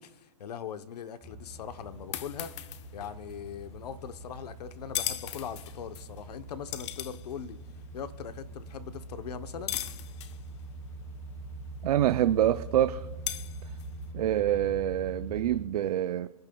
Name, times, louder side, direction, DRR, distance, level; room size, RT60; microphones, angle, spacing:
voice 1, 0.0-2.5 2.9-7.6 7.9-9.8, left 7 dB, 75° left, 0.9 m, -40 dB
sound 1, 1.2-15.6, right 2 dB, 15° left, 5.2 m, -43 dB
sound 2, 1.4-14.1, left 13 dB, 45° left, 0.6 m, -41 dB
voice 2, 11.8-13.1 14.1-16.3, right 12 dB, 70° right, 0.5 m, -26 dB
26.5 x 10.5 x 2.3 m
hypercardioid pair, 150°, 21 cm